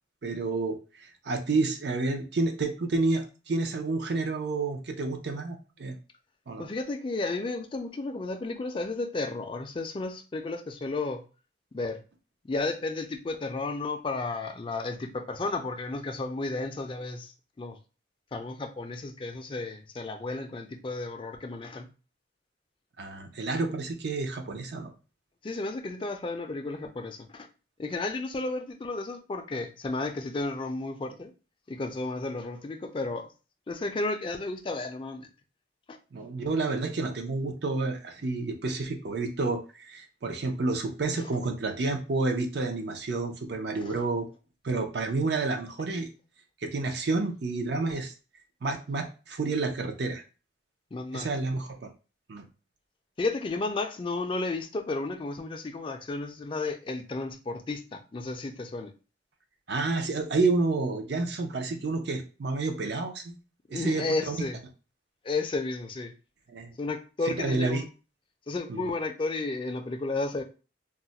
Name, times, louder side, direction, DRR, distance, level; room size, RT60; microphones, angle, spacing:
voice 1, 0.2-6.0 6.5-6.7 23.0-24.9 36.1-44.3 44.6-46.1 46.6-48.1 48.6-50.2 51.1-51.8 52.3-52.4 59.7-63.3 63.7-64.4 66.5-66.7 67.4-67.8 68.7-68.8, right 3 dB, 65° right, 0.5 m, -29 dB
voice 2, 6.6-11.2 11.7-12.0 12.5-17.8 18.3-21.9 25.4-27.5 27.8-31.3 31.7-33.3 33.7-35.3 35.9-36.0 41.2-41.3 43.8-44.0 50.9-51.3 53.2-58.9 63.7-64.6 65.2-66.1 66.8-67.9 68.5-70.4, left 3 dB, 30° left, 0.4 m, -33 dB
2.4 x 2.1 x 3.9 m
head